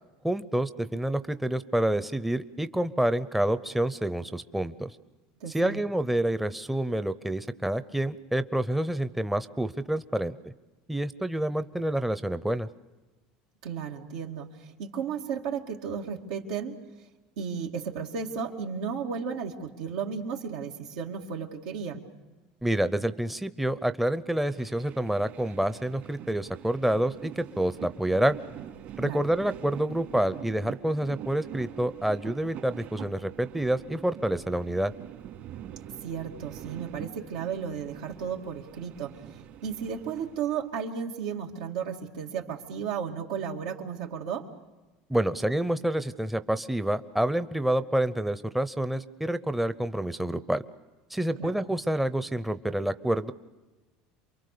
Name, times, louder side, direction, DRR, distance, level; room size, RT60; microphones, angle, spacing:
voice 1, 0.2-4.9 5.5-10.4 10.9-12.7 22.6-28.4 29.0-34.9 45.1-50.6 51.1-53.3, right 1 dB, 5° right, 12 dB, 0.7 m, -28 dB
voice 2, 5.4-5.8 13.6-16.8 17.4-22.0 29.0-29.3 36.0-44.5 51.4-51.6, right 7 dB, 90° right, 1 dB, 2.5 m, -34 dB
sound 1, 24.4-40.7, right 10 dB, 55° right, 2.9 m, -44 dB
28.5 x 23.0 x 6.9 m, 1.2 s
supercardioid pair, 120°, 3 cm